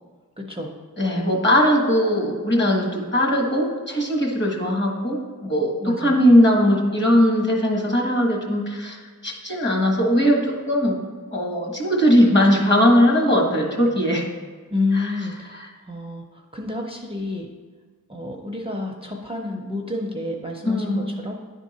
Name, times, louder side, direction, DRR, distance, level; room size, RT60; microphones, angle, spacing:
voice 1, 0.4-0.8 5.8-6.3 14.7-17.5 18.1-21.3, left 2 dB, 15° right, 1 dB, 0.6 m, -29 dB
voice 2, 1.0-11.0 11.3-14.2 14.9-15.1 20.6-21.1, equal, 35° left, 0 dB, 1.4 m, -19 dB
10.0 x 3.7 x 4.2 m, 1.5 s
wide cardioid pair, 80°, 34 cm